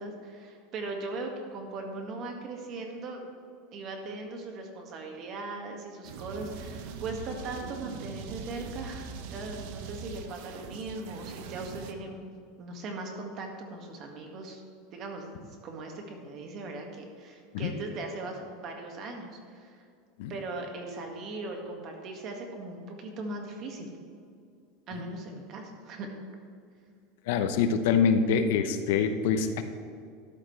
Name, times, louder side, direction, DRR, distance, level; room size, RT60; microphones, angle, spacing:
voice 1, 0.0-3.3 3.7-12.2 12.6-14.6 14.9-15.3 15.6-19.8 20.3-23.9 24.9-26.1, right 2 dB, 40° right, 2 dB, 1.9 m, -39 dB
sound 1, 6.0-11.9, right 6 dB, 60° right, 0.9 m, -42 dB
voice 2, 27.3-29.6, left 6 dB, 70° left, 8 dB, 0.9 m, -25 dB
13.0 x 11.5 x 3.3 m, 2.3 s
supercardioid pair, 140°, 0 cm